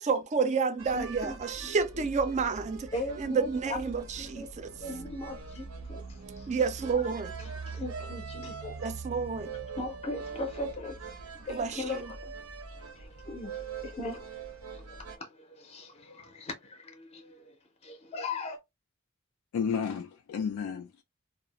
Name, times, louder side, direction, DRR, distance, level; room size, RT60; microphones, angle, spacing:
voice 1, 0.0-2.9 3.2-4.7 6.5-7.3 8.8-9.5 11.5-12.0, right 5 dB, 35° right, 0.3 m, -30 dB
sound 1, 0.8-15.2, right 4 dB, 90° right, 0.6 m, -42 dB
voice 2, 0.9-1.3 1.6-2.1 2.9-6.5 6.8-7.0 7.4-8.8 9.8-12.3 12.8-14.4 14.7-17.5 17.8-18.6, left 2 dB, 30° left, 0.5 m, -39 dB
voice 3, 19.5-21.0, left 6 dB, 85° left, 0.4 m, -32 dB
2.3 x 2.0 x 2.8 m
head